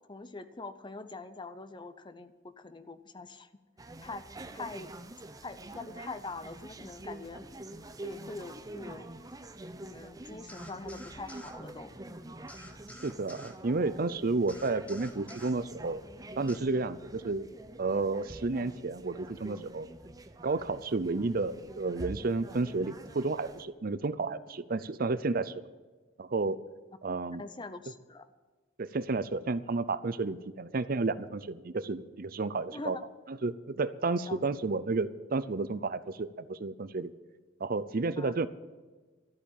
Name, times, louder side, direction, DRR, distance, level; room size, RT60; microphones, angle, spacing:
voice 1, 0.1-3.5 4.0-4.2 4.5-4.9 5.4-7.4 8.0-9.1 9.8-11.9 21.1-21.2 27.4-28.3 32.7-33.0 34.3-34.4 38.2-38.4, left 3 dB, 25° left, 12 dB, 0.8 m, -43 dB
sound 1, 3.8-23.6, right 1 dB, 20° right, 0.8 m, -46 dB
sound 2, 10.5-11.6 12.5-13.6 14.5-15.6 16.5-16.6, equal, 5° left, 1.3 m, -50 dB
voice 2, 13.0-16.0 16.4-17.5 17.8-19.9 20.4-25.6 26.2-26.6 27.0-27.4 28.8-33.0 33.3-37.1 37.6-38.5, right 3 dB, 50° right, 15 dB, 0.6 m, -31 dB
13.0 x 8.4 x 9.1 m, 1.3 s
head